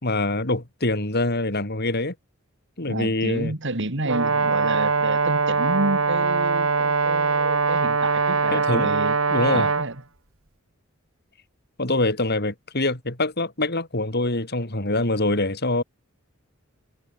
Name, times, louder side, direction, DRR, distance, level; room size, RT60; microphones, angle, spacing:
voice 1, 0.0-2.1 2.8-3.5 8.5-8.9 9.3-9.7 11.8-15.8, left 2 dB, 50° left, 4.1 m, -24 dB
voice 2, 2.9-9.2 9.5-10.0, right 2 dB, 60° right, 3.1 m, -29 dB
Brass instrument, 4.0-9.9, right 4 dB, 90° right, 2.1 m, -22 dB
head